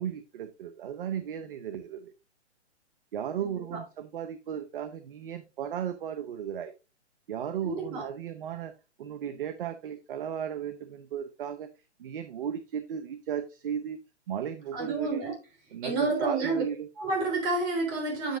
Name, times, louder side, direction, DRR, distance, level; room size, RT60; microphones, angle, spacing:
voice 1, 0.0-2.1 3.1-6.7 7.3-8.7 9.0-11.7 12.0-14.0 14.3-15.4 15.7-16.9, right 9 dB, 50° right, 0.8 m, -35 dB
voice 2, 3.4-3.8 7.6-8.1 14.7-15.3 15.8-16.6 17.0-18.4, right 3 dB, 30° right, 3.7 m, -29 dB
8.8 x 8.0 x 2.6 m
hypercardioid pair, 135°, 35 cm